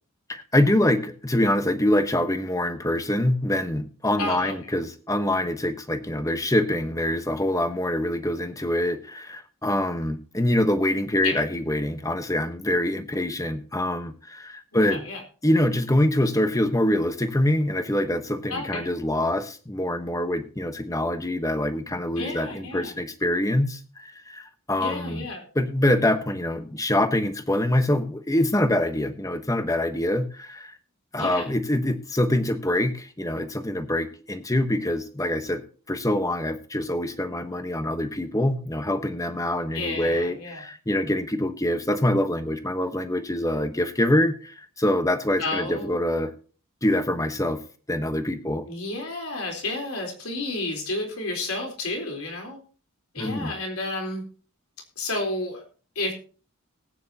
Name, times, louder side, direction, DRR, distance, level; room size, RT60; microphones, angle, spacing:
voice 1, 0.3-15.0 15.4-25.3 25.5-30.7 31.1-46.3 46.8-47.6 47.9-48.6 53.2-53.5, left 1 dB, 15° left, 8 dB, 1.1 m, -25 dB
voice 2, 4.2-4.5 11.2-11.4 14.9-15.2 18.5-18.8 22.2-22.9 24.8-25.5 31.2-31.5 39.7-40.6 45.4-46.0 48.7-52.6 53.1-54.2 55.0-55.6 56.0-56.1, left 2 dB, 85° left, 2 dB, 3.9 m, -31 dB
19.0 x 9.4 x 2.9 m, 0.39 s
head